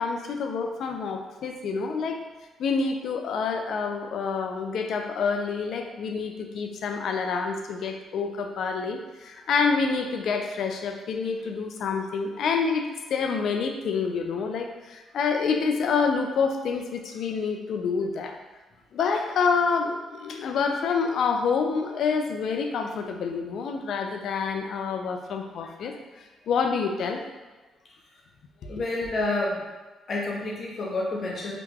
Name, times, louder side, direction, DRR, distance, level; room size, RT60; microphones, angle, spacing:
voice 1, 0.0-2.2 2.6-18.4 18.9-26.0 26.5-27.2 28.6-28.8, left 5 dB, 70° left, 4 dB, 0.4 m, -27 dB
voice 2, 28.7-29.7 30.1-31.6, left 2 dB, 50° left, -2 dB, 0.8 m, -29 dB
2.9 x 2.3 x 3.5 m, 1.2 s
cardioid pair, 90°, 0 cm